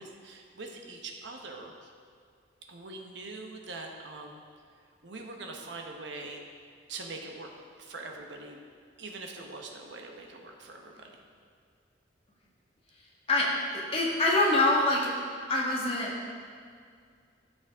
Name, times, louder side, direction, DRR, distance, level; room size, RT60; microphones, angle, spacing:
voice 1, 0.0-1.9 2.7-4.4 5.0-6.5 6.9-7.5 7.8-8.6 9.0-11.2, right 3 dB, 75° right, 2 dB, 1.0 m, -43 dB
voice 2, 13.3-15.1 15.5-16.1, left 2 dB, 30° left, -3 dB, 1.5 m, -25 dB
13.5 x 5.4 x 3.6 m, 2.1 s
head